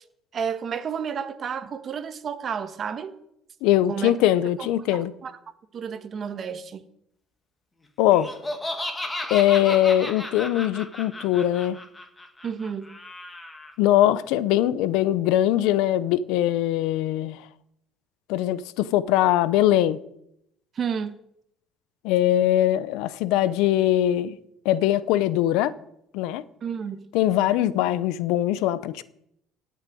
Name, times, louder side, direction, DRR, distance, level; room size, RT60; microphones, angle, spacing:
voice 1, 0.3-3.1 3.9-4.1 4.9-5.4 5.7-6.8 12.4-13.0 20.7-21.1 26.6-27.1, right 7 dB, 40° right, 1.4 m, -31 dB
voice 2, 3.6-5.1 8.0-8.3 9.3-11.8 13.8-17.5 18.3-20.0 22.0-24.4 24.6-25.8 26.1-26.4 27.1-29.0, left 13 dB, 85° left, 0.8 m, -21 dB
Laughter, 8.1-13.7, left 1 dB, 15° left, 2.2 m, -34 dB
17.5 x 6.6 x 9.2 m
cardioid pair, 120°, 0 cm